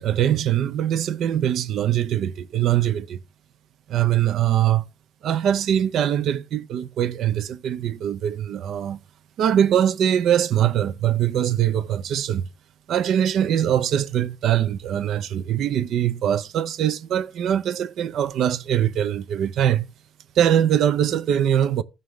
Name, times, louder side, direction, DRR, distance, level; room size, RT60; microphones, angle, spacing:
voice 1, 0.0-3.2 3.9-4.8 5.2-9.0 9.4-12.5 12.9-19.9 20.3-21.8, right 10 dB, 75° right, 0.6 m, -22 dB
15.0 x 5.5 x 3.2 m
cardioid pair, 90°, 0 cm